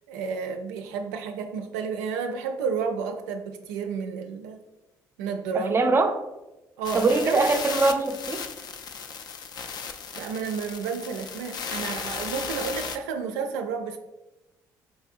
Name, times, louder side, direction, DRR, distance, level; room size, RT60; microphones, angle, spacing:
voice 1, 0.1-4.6 5.2-5.9 6.8-7.4 10.2-14.0, right 5 dB, 90° right, 6 dB, 0.4 m, -31 dB
voice 2, 5.5-6.2 6.9-8.5, right 3 dB, 30° right, 8 dB, 0.4 m, -22 dB
sound 1, 6.8-13.0, left 6 dB, 50° left, 0.4 m, -35 dB
4.1 x 2.7 x 2.5 m, 1.0 s
hypercardioid pair, 60°, 9 cm